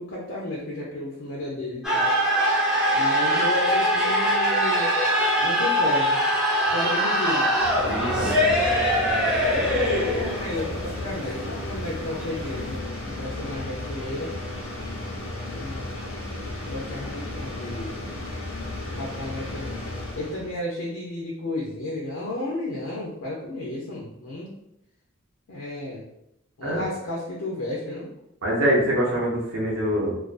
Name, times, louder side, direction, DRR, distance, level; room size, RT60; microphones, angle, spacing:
voice 1, 0.0-2.1 2.9-4.9 5.4-6.2 6.7-7.5 9.3-14.3 15.5-16.0 16.6-18.0 18.9-19.8 20.1-24.5 25.5-26.1 26.6-28.1, left 1 dB, 60° left, -4 dB, 0.5 m, -32 dB
sound 1, 1.8-12.8, equal, 5° right, 0.5 m, -23 dB
sound 2, 7.6-20.6, left 2 dB, 85° left, 0.8 m, -34 dB
voice 2, 7.8-8.6 26.6-26.8 28.4-30.2, equal, 70° right, -3 dB, 0.7 m, -24 dB
2.3 x 2.2 x 2.4 m, 0.80 s
head